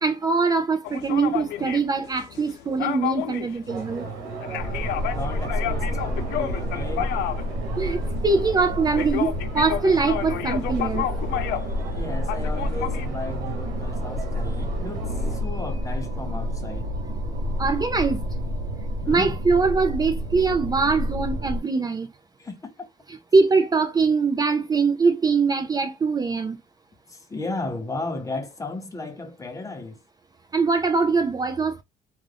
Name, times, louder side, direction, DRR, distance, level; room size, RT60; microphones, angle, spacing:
voice 1, 0.0-4.0 7.8-11.1 17.6-18.2 19.1-22.1 23.3-26.6 30.5-31.8, right 4 dB, 25° right, 0.4 m, -22 dB
sound 1, 0.8-11.9 12.2-13.1, left 12 dB, 80° left, 0.4 m, -31 dB
sound 2, 3.7-15.4, right 3 dB, 90° right, 1.0 m, -37 dB
sound 3, 4.6-21.6, equal, 65° right, 0.9 m, -29 dB
voice 2, 5.1-7.1 11.5-16.9 19.0-19.4 22.4-22.9 27.1-30.0, left 2 dB, 20° left, 0.6 m, -35 dB
2.5 x 2.4 x 3.3 m
cardioid pair, 110°, 17 cm